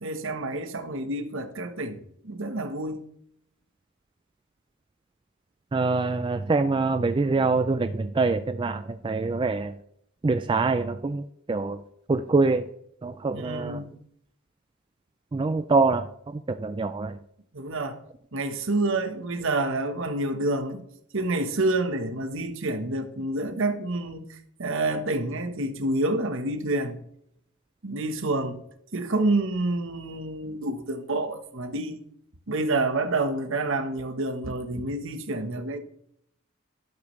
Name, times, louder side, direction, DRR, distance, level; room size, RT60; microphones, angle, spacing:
voice 1, 0.0-3.1 13.3-13.9 17.5-18.0 18.3-20.8 21.1-27.0 27.8-28.6 28.9-32.0 32.5-35.8, right 2 dB, 60° right, 1.2 m, -28 dB
voice 2, 5.7-9.7 10.2-11.8 12.1-12.7 13.0-13.8 15.3-17.2, right 3 dB, 20° right, 0.3 m, -25 dB
12.0 x 12.0 x 3.2 m
head